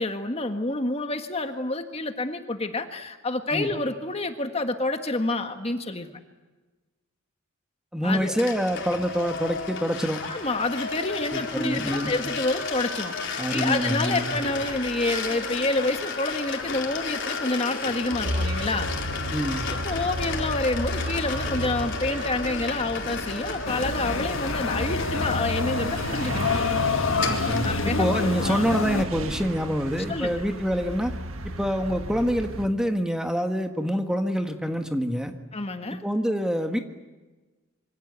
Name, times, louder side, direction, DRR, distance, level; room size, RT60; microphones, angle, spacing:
voice 1, 0.0-6.1 8.0-8.4 10.2-18.9 19.7-26.6 27.6-28.6 30.1-30.4 35.5-36.0, left 2 dB, 30° left, 6 dB, 1.6 m, -28 dB
voice 2, 7.9-10.2 11.3-12.1 13.4-14.3 19.3-19.7 27.2-31.2 31.4-35.3 35.9-36.8, equal, 5° right, 5 dB, 1.6 m, -26 dB
sound 1, 8.4-27.9, left 4 dB, 60° left, 4.5 m, -33 dB
sound 2, 18.1-32.7, right 1 dB, 80° right, 1.7 m, -33 dB
sound 3, 23.6-29.0, left 4 dB, 75° left, 1.4 m, -28 dB
27.0 x 25.0 x 8.2 m, 1.2 s
head